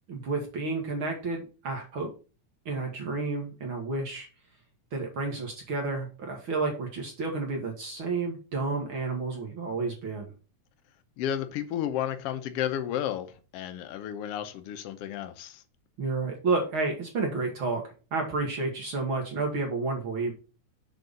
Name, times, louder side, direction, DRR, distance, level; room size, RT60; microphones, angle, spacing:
voice 1, 0.1-2.1 2.7-4.3 4.9-10.3 16.0-17.8 18.1-20.3, right 3 dB, 50° right, 2.0 m, -30 dB
voice 2, 11.2-15.6, left 10 dB, 70° left, 1.5 m, -32 dB
6.7 x 4.6 x 5.1 m
omnidirectional pair, 3.3 m